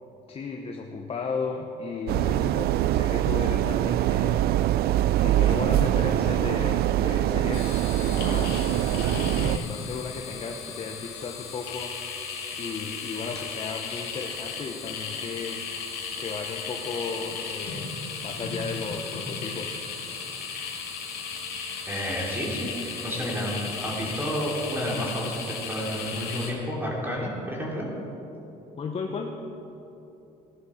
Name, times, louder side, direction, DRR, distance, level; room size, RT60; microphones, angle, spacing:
voice 1, 0.3-4.9 5.2-8.7 9.3-11.9 12.6-15.6 16.2-19.8 28.8-29.4, left 4 dB, 35° left, 2 dB, 0.8 m, -35 dB
sound 1, 2.1-9.6, right 13 dB, 65° right, 0.4 m, -23 dB
sound 2, 7.5-26.5, left 5 dB, 80° left, 2.3 m, -35 dB
voice 2, 21.9-27.9, equal, 10° right, -3 dB, 2.8 m, -31 dB
15.5 x 11.0 x 4.3 m, 2.9 s
cardioid pair, 110°, 17 cm